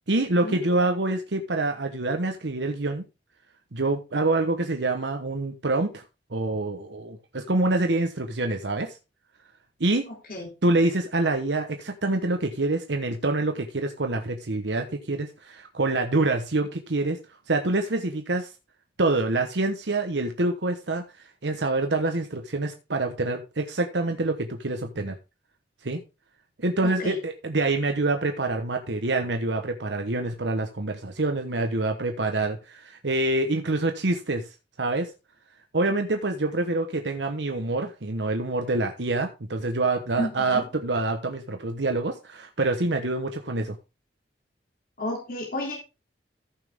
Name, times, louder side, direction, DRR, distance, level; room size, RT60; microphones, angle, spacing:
voice 1, 0.1-3.1 3.7-6.0 6.3-9.0 9.8-10.0 10.6-17.2 17.5-18.5 19.0-21.0 21.4-25.2 25.8-26.0 26.6-34.5 34.8-35.1 35.7-43.8, right 2 dB, 80° right, 1.1 m, -26 dB
voice 2, 26.8-27.2 40.1-40.7 45.0-45.7, left 1 dB, 55° left, 3.3 m, -32 dB
14.5 x 5.9 x 3.5 m
head